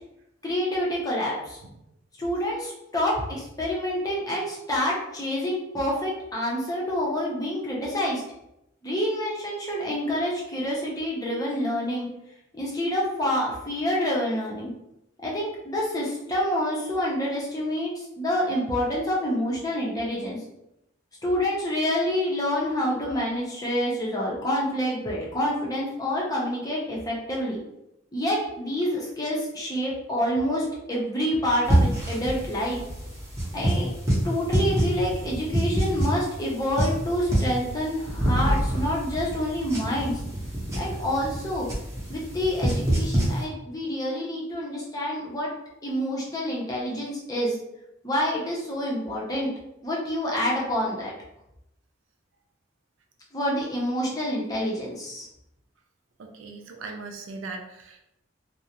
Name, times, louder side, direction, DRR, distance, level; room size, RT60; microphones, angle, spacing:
voice 1, 0.4-1.6 2.2-8.2 8.8-12.1 12.5-14.7 15.2-20.4 21.2-27.6 28.1-32.8 33.5-33.9 34.2-40.2 40.7-41.7 42.1-45.5 45.8-47.6 48.0-49.5 49.8-51.1 53.3-55.3, equal, 20° left, -4 dB, 0.5 m, -27 dB
sound 1, 31.6-43.4, right 1 dB, 15° right, 0.7 m, -27 dB
voice 2, 56.2-58.0, right 3 dB, 75° right, 3 dB, 0.4 m, -39 dB
2.4 x 2.0 x 2.8 m, 0.83 s
head